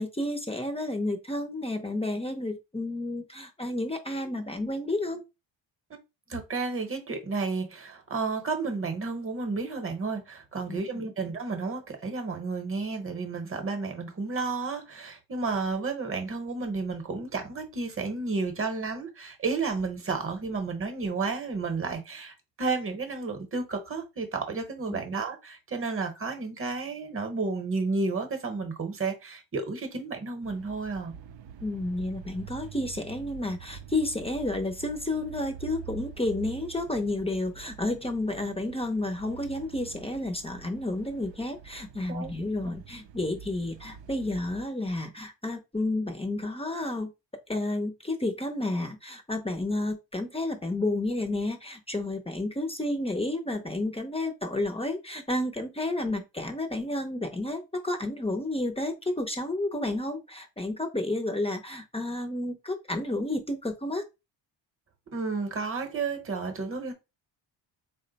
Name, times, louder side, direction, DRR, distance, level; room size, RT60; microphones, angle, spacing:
voice 1, 0.0-5.2 10.7-10.8 24.9-25.1 31.6-47.1 47.5-64.0, left 2 dB, 15° left, 0.5 m, -31 dB
voice 2, 6.3-31.1 42.1-42.3 42.6-42.7 65.1-66.9, right 4 dB, 30° right, 0.9 m, -32 dB
sound 1, 30.4-44.7, right 8 dB, 70° right, 0.5 m, -46 dB
3.7 x 2.2 x 3.9 m
cardioid pair, 90°, 46 cm